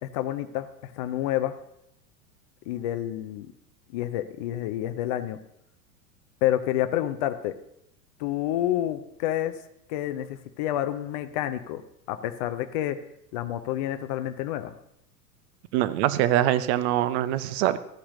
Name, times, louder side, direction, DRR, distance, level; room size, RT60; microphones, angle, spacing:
voice 1, 0.0-1.5 2.7-3.5 3.9-5.4 6.4-7.5 8.2-9.5 9.9-11.8 12.1-13.0 13.3-14.7, left 12 dB, 30° left, 9 dB, 0.3 m, -29 dB
voice 2, 15.7-17.8, right 13 dB, 45° right, 14 dB, 0.6 m, -23 dB
14.5 x 8.4 x 2.6 m, 0.76 s
figure-of-eight pair, 90°, 47 cm